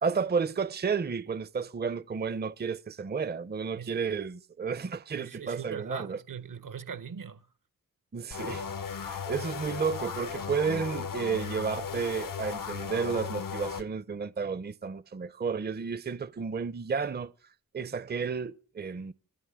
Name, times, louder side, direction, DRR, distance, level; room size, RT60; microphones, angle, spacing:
voice 1, 0.0-6.2 8.1-8.7 9.0-17.3 17.7-19.1, right 5 dB, 30° right, 0.6 m, -32 dB
voice 2, 5.2-7.5, right 7 dB, 60° right, 0.8 m, -40 dB
sound 1, 8.3-13.8, left 6 dB, 65° left, 0.8 m, -36 dB
27.0 x 11.0 x 3.6 m
cardioid pair, 50°, 36 cm